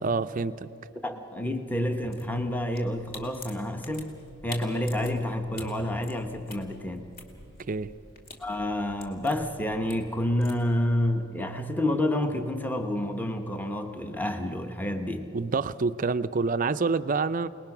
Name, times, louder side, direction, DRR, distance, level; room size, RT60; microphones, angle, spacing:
voice 1, 0.0-0.7 7.7-7.9 15.3-17.5, right 4 dB, 40° right, 13 dB, 0.5 m, -27 dB
voice 2, 1.0-4.1 4.4-7.1 8.4-15.3, left 1 dB, 10° left, 6 dB, 1.0 m, -29 dB
sound 1, 1.9-10.6, left 2 dB, 45° left, 2.6 m, -48 dB
28.5 x 19.5 x 6.0 m, 2.8 s
head